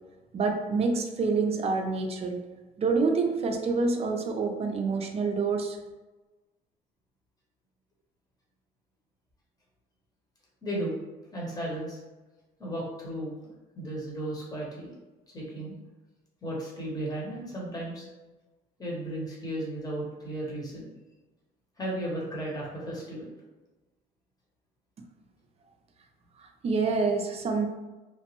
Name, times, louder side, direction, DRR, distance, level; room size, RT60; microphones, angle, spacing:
voice 1, 0.3-2.5 2.8-5.8 26.6-27.7, right 4 dB, 35° right, 3 dB, 0.4 m, -27 dB
voice 2, 10.6-10.9 11.3-12.0 12.6-13.3 13.7-14.9 15.3-15.8 16.4-18.1 18.8-20.9 21.8-23.3, right 1 dB, 20° left, -4 dB, 1.0 m, -34 dB
3.0 x 2.1 x 3.0 m, 1.2 s
cardioid pair, 110°, 17 cm